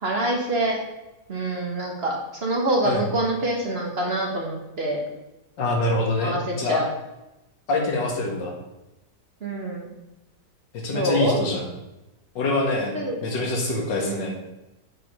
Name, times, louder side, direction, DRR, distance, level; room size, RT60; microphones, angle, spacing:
voice 1, 0.0-0.8 1.3-5.0 6.2-6.9 9.4-9.9 10.9-11.4 12.9-13.2 14.1-14.2, right 1 dB, 40° right, 0 dB, 1.4 m, -26 dB
voice 2, 5.6-6.8 7.7-8.5 10.7-11.7 12.4-14.3, left 2 dB, 80° left, 1 dB, 2.2 m, -25 dB
7.5 x 5.1 x 5.4 m, 0.96 s
omnidirectional pair, 1.9 m